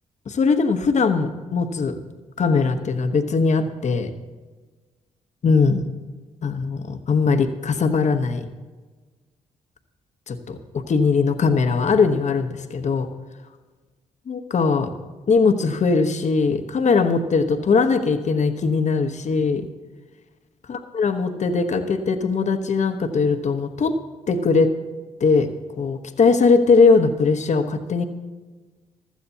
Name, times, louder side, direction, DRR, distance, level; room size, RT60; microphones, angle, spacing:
voice 1, 0.3-2.0 2.4-4.1 5.4-5.8 6.4-8.4 10.3-13.1 14.3-14.9 15.3-19.7 20.7-24.0 24.3-24.7 25.2-25.5 25.8-28.1, left 4 dB, 50° left, 8 dB, 1.0 m, -20 dB
15.5 x 12.5 x 2.8 m, 1.3 s
hypercardioid pair, 45°, 15 cm